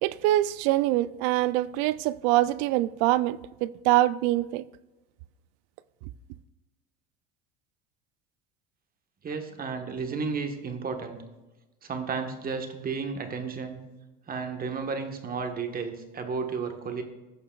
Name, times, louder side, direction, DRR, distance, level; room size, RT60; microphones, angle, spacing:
voice 1, 0.0-4.7, right 16 dB, 65° right, 0.5 m, -24 dB
voice 2, 9.2-11.2 11.8-13.8 14.3-17.0, right 5 dB, 30° right, 1.4 m, -33 dB
15.5 x 6.6 x 2.4 m
supercardioid pair, 95°, 30 cm